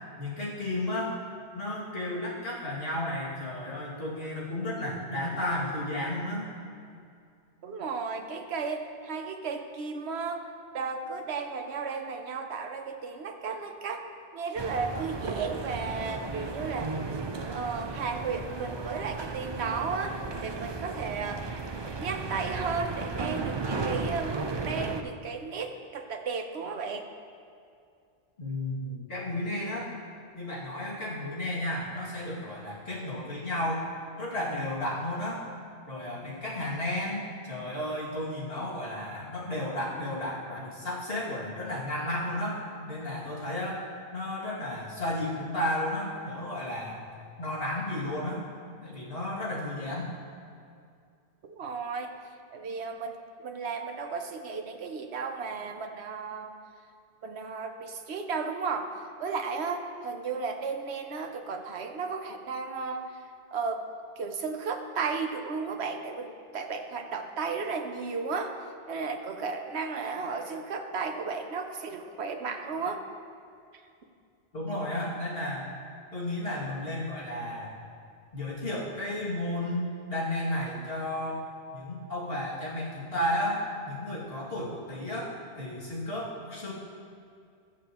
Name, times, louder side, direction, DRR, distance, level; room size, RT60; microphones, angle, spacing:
voice 1, 0.2-1.1 1.5-6.5 28.4-29.9 30.3-33.8 34.2-35.4 35.9-43.8 44.1-47.0 47.4-48.4 48.8-50.1 74.5-75.7 76.1-77.7 78.3-81.4 81.7-83.6 83.9-86.7, left 1 dB, 55° left, -7 dB, 2.7 m, -33 dB
voice 2, 7.6-10.4 10.7-14.0 14.3-16.9 17.5-21.5 21.8-27.1 51.4-52.1 52.5-56.5 57.2-58.9 59.2-63.1 63.5-63.9 64.2-68.5 68.9-73.0, right 5 dB, 65° right, 5 dB, 1.1 m, -34 dB
sound 1, 14.6-25.0, right 4 dB, 40° right, 0.4 m, -35 dB
21.0 x 7.2 x 3.0 m, 2.4 s
omnidirectional pair, 1.2 m